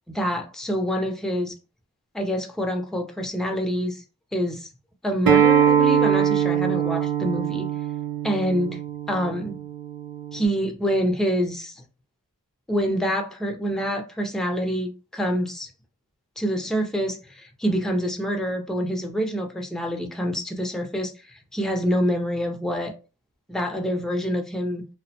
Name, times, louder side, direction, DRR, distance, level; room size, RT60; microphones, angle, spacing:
voice 1, 0.1-1.5 2.1-4.0 4.3-4.7 5.0-7.7 8.2-8.8 9.1-9.6 10.3-11.8 12.7-15.7 16.4-22.9 23.5-24.8, equal, ahead, 0.5 m, -26 dB
Acoustic guitar, 5.3-10.5, right 8 dB, 60° right, 0.6 m, -22 dB
2.4 x 2.1 x 2.7 m
wide cardioid pair, 40°, 39 cm